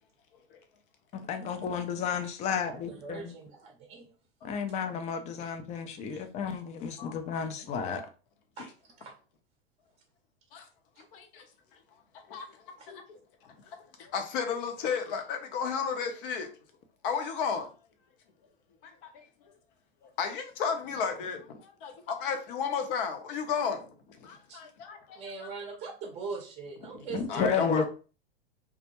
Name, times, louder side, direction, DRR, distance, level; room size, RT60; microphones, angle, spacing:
voice 1, 1.1-3.3 4.4-8.1 27.1-27.8, left 6 dB, 25° left, 0.3 m, -32 dB
voice 2, 2.5-4.1 6.1-6.2 8.6-9.1 11.0-11.1 12.8-12.9 24.5-24.6 25.1-27.8, right 4 dB, 20° right, 0.6 m, -42 dB
voice 3, 11.1-11.5 12.3-12.5 12.9-13.0 13.4-16.5 17.0-17.7 18.8-19.2 20.0-23.9 24.2-25.2 26.9-27.8, left 6 dB, 60° left, 0.7 m, -33 dB
2.2 x 2.1 x 2.8 m
hypercardioid pair, 105°, 31 cm